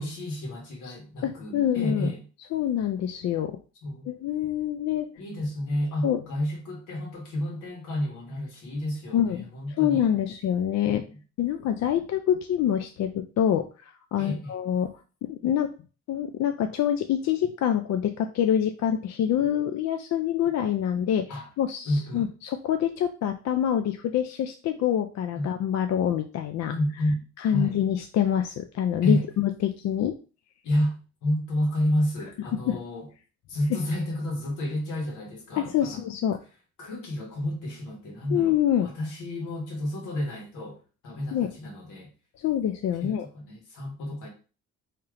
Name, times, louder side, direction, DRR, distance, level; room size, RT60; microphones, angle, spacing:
voice 1, 0.0-2.3 3.8-4.1 5.2-10.1 10.8-11.2 14.2-14.6 21.3-21.5 21.8-22.3 25.3-25.5 26.7-27.2 27.5-27.8 29.0-29.3 30.6-33.1 33.5-36.0 36.8-42.1 43.0-44.3, left 1 dB, 85° left, 0 dB, 1.5 m, -30 dB
voice 2, 1.2-2.1 2.5-3.6 4.1-5.1 6.0-6.2 9.1-9.4 9.8-11.1 11.4-14.9 15.2-15.7 16.1-21.3 21.6-26.7 27.4-30.2 32.7-32.8 35.6-36.4 38.3-38.9 41.3-41.5 42.4-43.3, left 10 dB, 60° left, 7 dB, 0.4 m, -26 dB
3.3 x 3.0 x 3.6 m, 0.35 s
cardioid pair, 90°, 30 cm